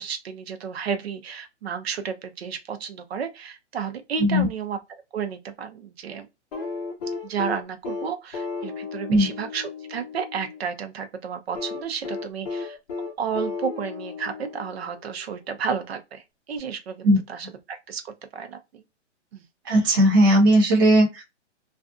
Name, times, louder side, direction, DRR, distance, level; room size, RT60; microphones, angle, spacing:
voice 1, 0.0-4.8 5.1-6.3 7.2-12.8 13.2-16.2 16.5-18.8 19.3-19.4, right 6 dB, 60° right, 0.6 m, -32 dB
sound 1, 6.5-10.6 11.6-15.1 16.6-16.7, left 4 dB, 30° left, 0.9 m, -34 dB
voice 2, 19.7-21.2, right 1 dB, 20° right, 0.4 m, -17 dB
2.5 x 2.4 x 2.3 m
hypercardioid pair, 160°, 36 cm